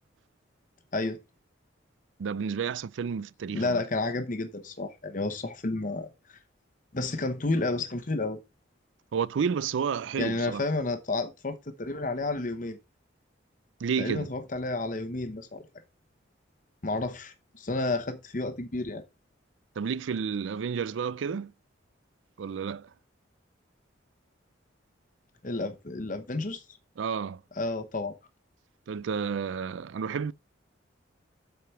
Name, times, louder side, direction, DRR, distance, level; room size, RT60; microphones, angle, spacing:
voice 1, 2.2-3.8 9.1-10.7 13.8-14.3 19.8-21.5 22.4-22.9 27.0-27.4 28.9-30.3, right 6 dB, 80° right, 0.4 m, -31 dB
voice 2, 3.5-6.4 6.9-8.4 10.2-12.8 14.0-15.6 16.8-19.0 25.4-26.6 27.6-28.2, left 2 dB, 45° left, 0.9 m, -31 dB
7.9 x 5.0 x 5.7 m
head